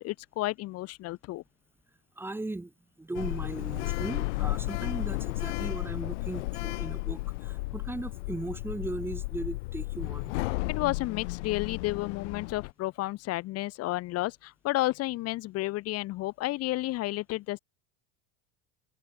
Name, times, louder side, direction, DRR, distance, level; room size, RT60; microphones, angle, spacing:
voice 1, 0.0-1.4 10.7-17.6, left 18 dB, 45° left, 1.3 m, -31 dB
voice 2, 2.2-2.7 3.0-10.3, right 2 dB, 5° right, 2.1 m, -37 dB
Sliding door, 3.1-12.7, left 23 dB, 75° left, 4.0 m, -33 dB
supercardioid pair, 140°, 35 cm